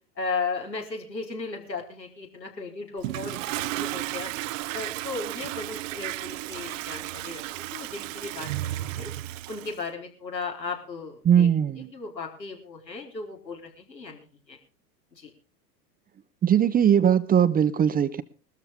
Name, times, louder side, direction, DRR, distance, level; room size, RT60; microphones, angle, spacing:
voice 1, 0.2-4.3 4.7-9.1 9.5-11.5 11.9-14.6 15.2-15.3, left 4 dB, 90° left, 4.2 m, -36 dB
Toilet flush, 3.0-9.8, right 17 dB, 50° right, 0.7 m, -33 dB
voice 2, 11.2-11.9 16.4-18.2, right 9 dB, 20° right, 0.8 m, -20 dB
21.0 x 13.5 x 3.7 m
figure-of-eight pair, 90°, 49 cm